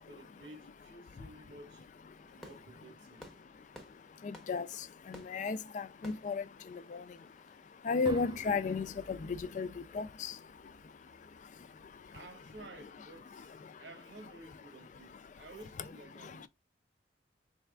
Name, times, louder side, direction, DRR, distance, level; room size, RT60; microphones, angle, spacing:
voice 1, 0.0-1.9 2.3-3.3 6.9-7.0 12.1-16.5, right 2 dB, 75° right, 1.2 m, -53 dB
Fireworks, 2.1-7.7, equal, ahead, 0.8 m, -56 dB
voice 2, 5.3-6.4 7.9-9.7 9.9-10.3, left 4 dB, 40° left, 0.3 m, -33 dB
sound 1, 8.0-12.0, right 3 dB, 25° right, 0.4 m, -52 dB
4.2 x 3.5 x 2.2 m
head